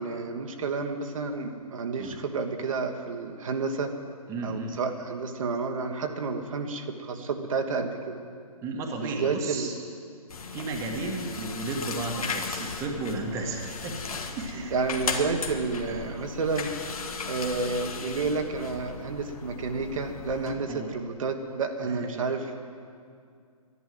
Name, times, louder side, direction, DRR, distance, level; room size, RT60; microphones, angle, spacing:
voice 1, 0.0-3.9 4.4-8.2 9.0-9.7 14.5-16.7 17.3-22.6, right 4 dB, 60° right, 4 dB, 1.3 m, -30 dB
voice 2, 4.3-4.8 8.6-9.7 10.5-14.7 15.9-16.3 20.7-20.9 21.8-22.3, right 3 dB, 15° right, 1 dB, 1.3 m, -34 dB
sound 1, 10.3-20.5, left 4 dB, 65° left, 1.6 m, -36 dB
12.5 x 11.0 x 9.1 m, 2.3 s
hypercardioid pair, 145°, 20 cm